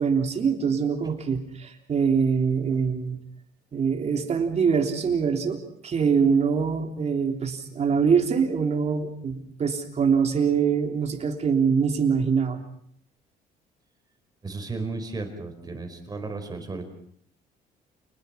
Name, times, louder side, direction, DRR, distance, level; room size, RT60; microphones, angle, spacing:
voice 1, 0.0-3.2 3.7-12.6, right 6 dB, 40° right, 4 dB, 3.4 m, -24 dB
voice 2, 14.4-16.9, right 3 dB, 25° right, 5 dB, 4.9 m, -34 dB
28.5 x 20.5 x 5.8 m, 0.65 s
cardioid pair, 110°, 17 cm